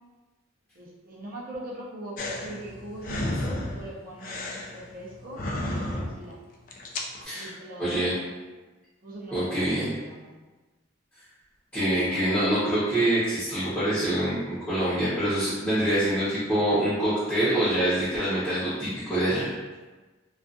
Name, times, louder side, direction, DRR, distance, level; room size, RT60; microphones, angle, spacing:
voice 1, 0.7-6.4 7.3-8.4 9.0-10.4, right 1 dB, 45° right, -4 dB, 0.5 m, -41 dB
sound 1, 2.2-6.3 6.7-7.2, left 1 dB, 40° left, 0.3 m, -33 dB
voice 2, 7.8-8.1 9.3-9.9 11.7-19.5, right 1 dB, 10° left, -13 dB, 0.7 m, -25 dB
2.4 x 2.3 x 2.5 m, 1.2 s
head